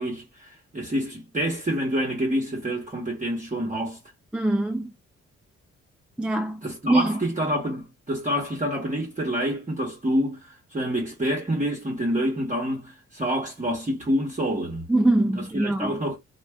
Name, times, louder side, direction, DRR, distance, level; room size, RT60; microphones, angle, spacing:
voice 1, 0.0-4.0 6.6-10.4 10.7-14.9 15.3-16.2, equal, 25° right, 1.0 m, -27 dB
voice 2, 4.3-4.9 6.2-7.2 14.9-16.0, right 2 dB, 5° right, 0.3 m, -23 dB
2.5 x 2.3 x 3.4 m
cardioid pair, 75°, 29 cm